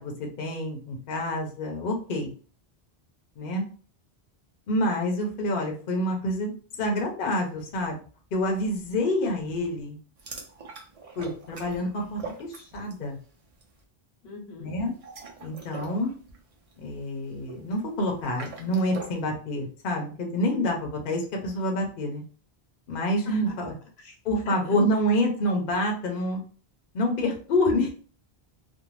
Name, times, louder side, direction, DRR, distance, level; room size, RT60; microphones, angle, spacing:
voice 1, 0.0-2.3 3.4-3.6 4.7-8.0 8.3-10.0 11.2-13.2 14.6-14.9 15.4-16.1 16.8-22.2 22.9-23.7 24.2-26.4 26.9-27.9, left 1 dB, 60° left, 1 dB, 0.8 m, -27 dB
sound 1, 10.2-13.1 13.4-13.7 14.8-19.2, right 4 dB, 45° right, 0.5 m, -43 dB
voice 2, 14.2-14.7 23.3-23.6 24.0-24.2 24.4-25.2, left 3 dB, 80° left, 1 dB, 1.0 m, -43 dB
2.6 x 2.0 x 3.0 m, 0.41 s
omnidirectional pair, 1.1 m